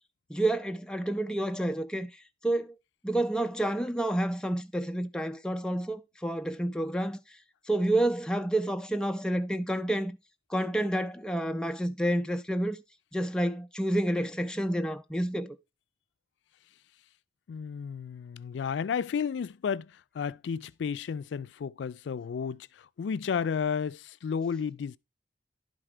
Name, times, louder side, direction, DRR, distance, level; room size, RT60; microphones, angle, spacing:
voice 1, 0.3-2.1 2.4-2.8 3.0-7.2 7.7-10.1 10.5-12.8 13.1-15.6, right 1 dB, 5° left, 0.4 m, -29 dB
voice 2, 17.5-25.0, left 6 dB, 85° left, 0.3 m, -32 dB
11.0 x 4.3 x 4.9 m
head